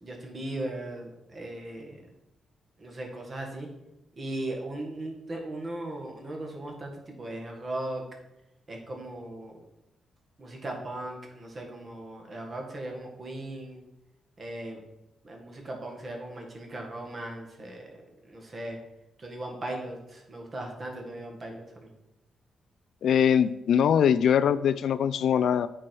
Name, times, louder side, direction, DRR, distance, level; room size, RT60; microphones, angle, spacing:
voice 1, 0.0-2.0 2.8-3.7 4.2-8.0 8.7-9.6 10.4-13.8 14.4-14.8 15.2-17.9 18.3-18.8 19.2-21.9, right 1 dB, 35° right, 1 dB, 1.8 m, -38 dB
voice 2, 23.0-25.7, left 8 dB, 70° left, 15 dB, 0.3 m, -22 dB
8.7 x 4.7 x 4.6 m, 0.91 s
cardioid pair, 115°, 0 cm